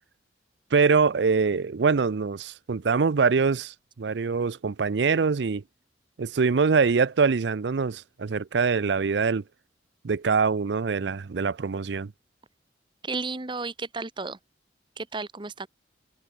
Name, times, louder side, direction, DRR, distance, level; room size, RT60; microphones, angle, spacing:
voice 1, 0.7-5.6 6.2-9.4 10.0-12.1, right 5 dB, 80° right, 0.5 m, -24 dB
voice 2, 13.0-14.4 15.0-15.7, right 3 dB, 25° right, 1.0 m, -33 dB
head